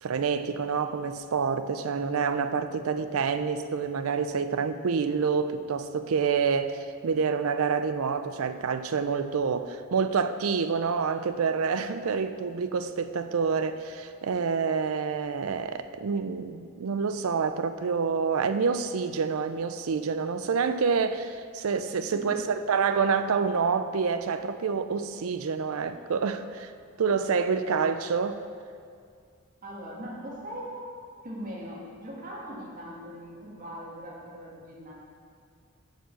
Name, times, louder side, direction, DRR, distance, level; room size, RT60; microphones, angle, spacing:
voice 1, 0.0-26.7 27.0-28.4, right 5 dB, 85° right, 11 dB, 0.5 m, -27 dB
voice 2, 22.0-22.4 23.2-23.4 29.6-30.9 31.2-34.9, equal, 40° right, -4 dB, 1.9 m, -40 dB
7.4 x 5.4 x 6.9 m, 2.2 s
head